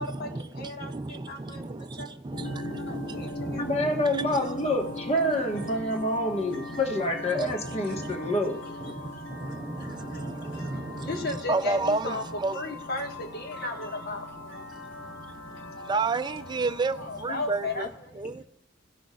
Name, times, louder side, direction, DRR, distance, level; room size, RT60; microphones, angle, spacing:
voice 1, 0.0-4.5 5.5-5.7 6.3-6.4 6.7-6.8 7.3-8.4 8.8-12.8 15.8-17.9 18.1-18.4, right 3 dB, 25° right, 0.4 m, -32 dB
voice 2, 0.6-0.9 1.3-1.6 2.0-2.1 2.9-3.3 4.4-4.8 11.0-12.2 12.5-14.2 15.8-15.9 17.0-17.9, left 2 dB, 55° left, 1.5 m, -34 dB
sound 1, 2.3-17.9, left 1 dB, 85° left, 1.2 m, -40 dB
voice 3, 3.6-8.6, left 1 dB, 35° left, 1.3 m, -27 dB
18.0 x 6.2 x 2.4 m
head